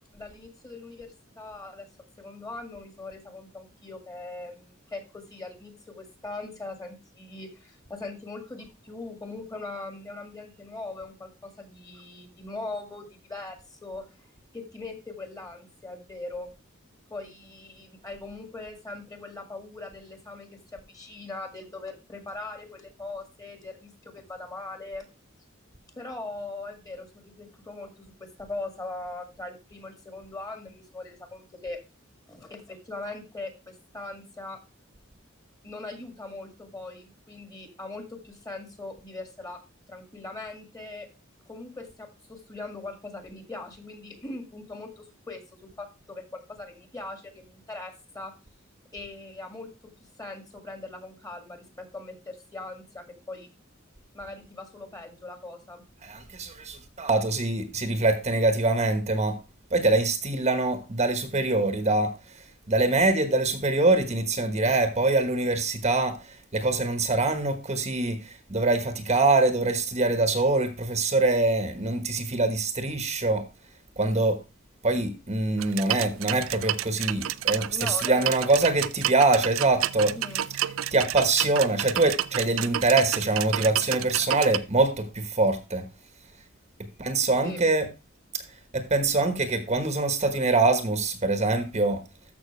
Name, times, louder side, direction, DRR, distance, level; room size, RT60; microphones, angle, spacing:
voice 1, 0.1-1.9 2.2-14.1 14.5-16.5 17.1-25.1 26.0-31.8 32.3-34.6 35.6-39.6 39.9-41.1 41.5-48.3 48.9-49.7 50.2-53.5 54.1-55.8 77.7-78.3 80.0-80.5 87.4-87.6, left 2 dB, 20° left, 2.0 m, -40 dB
voice 2, 56.0-59.4 59.7-62.1 62.7-73.4 74.0-74.4 74.8-80.1 80.9-85.8 87.0-87.8 88.7-92.0, right 2 dB, 35° right, 1.2 m, -24 dB
sound 1, 75.6-84.6, right 12 dB, 70° right, 0.5 m, -30 dB
13.5 x 5.9 x 3.2 m
head